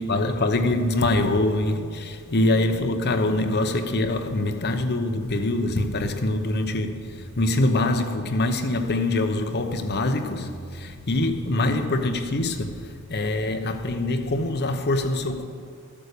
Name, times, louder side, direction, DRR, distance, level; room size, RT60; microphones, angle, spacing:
voice 1, 0.0-15.4, left 2 dB, 50° left, 0.9 m, -24 dB
13.0 x 8.8 x 6.7 m
head